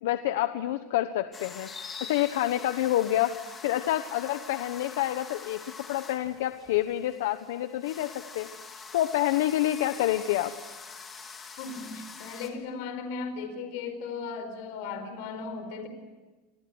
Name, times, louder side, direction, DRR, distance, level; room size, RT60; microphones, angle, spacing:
voice 1, 0.0-1.7 2.0-8.5 8.9-10.5, left 14 dB, 90° left, 10 dB, 1.2 m, -28 dB
sound 1, 1.3-12.5, left 5 dB, 20° left, 3.5 m, -45 dB
voice 2, 11.6-15.9, left 4 dB, 65° left, 8 dB, 4.8 m, -36 dB
29.0 x 25.5 x 8.0 m, 1.2 s
supercardioid pair, 155°, 0 cm